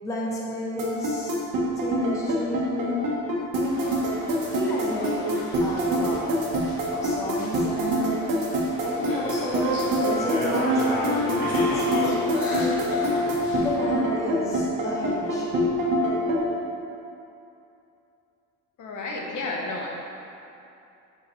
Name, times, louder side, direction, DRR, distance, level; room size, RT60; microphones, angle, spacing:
voice 1, 0.0-1.4 1.8-3.0 3.5-3.9 4.5-6.3 6.9-8.3 8.8-12.9 13.6-15.7, left 2 dB, 10° left, -4 dB, 0.5 m, -32 dB
sound 1, 0.8-16.4, equal, 70° right, 1.1 m, -24 dB
sound 2, 3.6-13.8, left 1 dB, 90° left, 1.2 m, -36 dB
voice 2, 18.8-19.9, left 2 dB, 60° left, -1 dB, 0.9 m, -31 dB
6.5 x 5.0 x 3.1 m, 2.7 s
cardioid pair, 180°, 34 cm